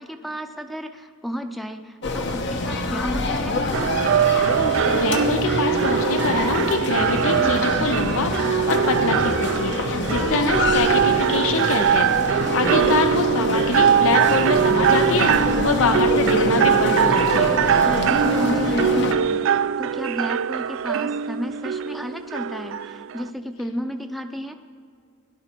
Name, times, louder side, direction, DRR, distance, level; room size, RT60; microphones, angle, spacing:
voice 1, 0.0-3.6 12.4-13.0 18.1-19.4 19.8-24.6, equal, ahead, 7 dB, 0.6 m, -33 dB
sound 1, 2.0-19.2, left 2 dB, 60° left, 1.0 m, -26 dB
sound 2, 3.7-23.3, right 8 dB, 65° right, 0.3 m, -22 dB
voice 2, 4.5-17.5, left 4 dB, 75° left, 6 dB, 0.7 m, -25 dB
17.5 x 11.5 x 4.5 m, 2.2 s
head